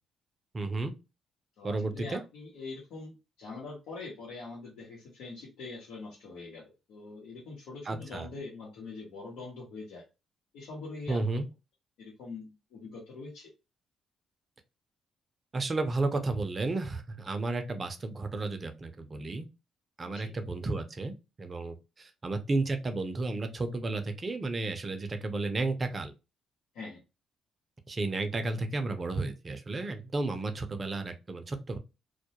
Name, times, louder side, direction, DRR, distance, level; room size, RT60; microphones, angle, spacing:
voice 1, 0.5-0.9 1.6-2.2 7.9-8.3 11.1-11.5 15.5-19.5 20.0-26.1 27.9-31.8, right 3 dB, 35° right, 0.5 m, -32 dB
voice 2, 1.6-6.6 6.9-10.0 10.5-11.4 12.0-13.5 20.0-20.3 26.7-27.0, left 3 dB, 85° left, 0.9 m, -43 dB
2.3 x 2.1 x 2.8 m
cardioid pair, 90°, 0 cm